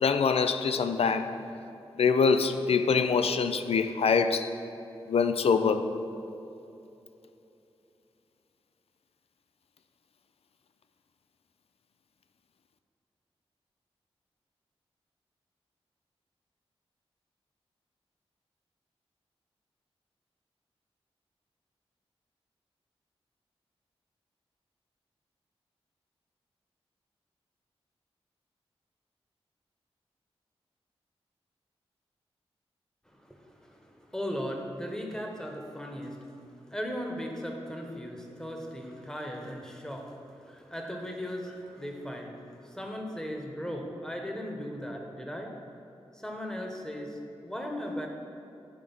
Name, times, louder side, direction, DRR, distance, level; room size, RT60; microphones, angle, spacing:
voice 1, 0.0-1.3 2.0-4.5 5.1-5.9, left 5 dB, 70° left, 10 dB, 0.4 m, -24 dB
voice 2, 33.1-45.6 46.1-48.1, equal, 5° left, 1 dB, 1.1 m, -38 dB
9.0 x 3.3 x 5.4 m, 2.9 s
cardioid pair, 50°, 11 cm